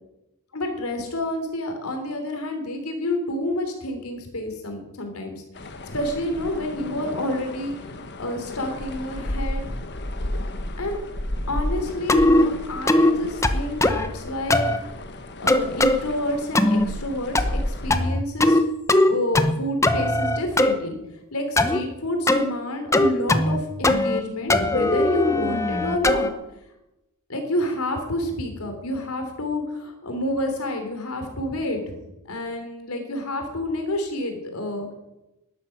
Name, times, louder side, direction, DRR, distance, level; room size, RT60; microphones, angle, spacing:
voice 1, 0.5-7.9 8.2-9.6 10.8-11.0 11.5-14.7 15.4-18.6 19.0-21.0 21.3-26.3 27.3-31.9 32.2-34.9, left 1 dB, 85° left, 5 dB, 3.4 m, -29 dB
sound 1, 5.5-18.1, left 1 dB, 50° left, 1.3 m, -33 dB
sound 2, 12.1-12.5 12.9-13.1 13.4-14.1 14.5-14.8 15.5-16.0 16.6-16.9 17.4-17.7 17.9-18.6 18.9-19.5 19.8-20.7 21.6-21.8 22.3-22.5 22.9-23.6 23.8-24.2 24.5-26.3, left 1 dB, 15° left, 0.7 m, -19 dB
12.5 x 12.0 x 5.9 m, 0.92 s
head